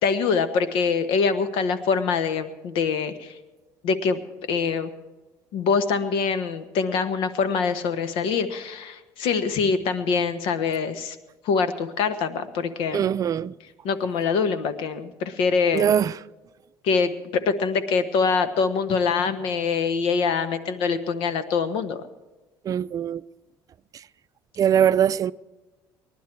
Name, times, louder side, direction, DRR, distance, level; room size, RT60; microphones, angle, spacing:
voice 1, 0.0-3.3 3.8-4.2 4.5-4.9 5.5-11.2 11.4-13.1 13.8-15.9 16.8-22.0, left 5 dB, 75° left, 1.2 m, -24 dB
voice 2, 12.9-13.5 15.7-16.2 22.6-23.2 24.6-25.3, right 9 dB, 40° right, 0.4 m, -21 dB
20.0 x 11.5 x 4.6 m
cardioid pair, 100°, 9 cm